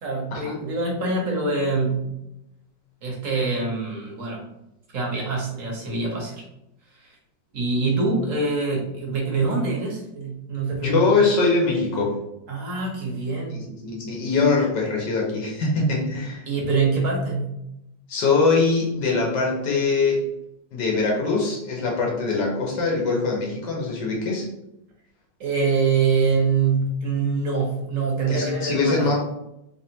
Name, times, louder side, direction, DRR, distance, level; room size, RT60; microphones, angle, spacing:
voice 1, 0.0-2.2 3.0-4.4 4.9-6.4 7.0-7.1 7.5-11.0 12.5-13.7 16.5-17.5 25.4-29.1, right 4 dB, 55° right, -2 dB, 1.3 m, -24 dB
voice 2, 10.7-12.2 13.5-16.5 18.1-20.3 20.7-24.5 28.3-29.2, left 3 dB, 75° left, -2 dB, 1.5 m, -22 dB
3.4 x 3.4 x 2.8 m, 0.85 s
omnidirectional pair, 1.9 m